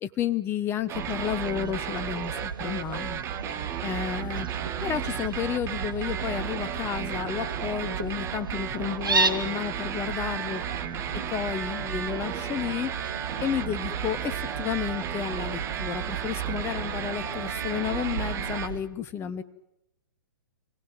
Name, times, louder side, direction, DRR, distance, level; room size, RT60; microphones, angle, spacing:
voice 1, 0.0-3.2 3.8-4.5 4.8-10.6 11.3-13.0 13.4-19.4, left 9 dB, 20° left, 13 dB, 1.3 m, -31 dB
sound 1, 0.9-18.7, right 9 dB, 25° right, 2.0 m, -34 dB
Fowl, 0.9-18.8, right 5 dB, 85° right, 2.7 m, -34 dB
28.0 x 18.5 x 9.1 m, 0.83 s
figure-of-eight pair, 120°, 11 cm